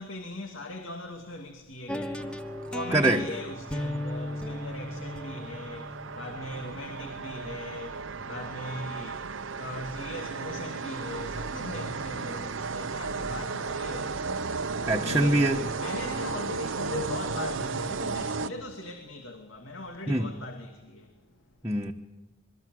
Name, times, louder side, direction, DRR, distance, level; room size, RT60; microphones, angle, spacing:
voice 1, 0.0-21.5, left 1 dB, 85° left, 2.5 m, -40 dB
sound 1, 1.9-7.9, left 1 dB, 5° left, 1.0 m, -37 dB
sound 2, 2.2-19.0, right 4 dB, 85° right, 0.9 m, -35 dB
voice 2, 2.9-3.2 14.9-15.6 20.1-20.3 21.6-21.9, right 2 dB, 15° right, 1.2 m, -24 dB
27.0 x 22.0 x 7.8 m
head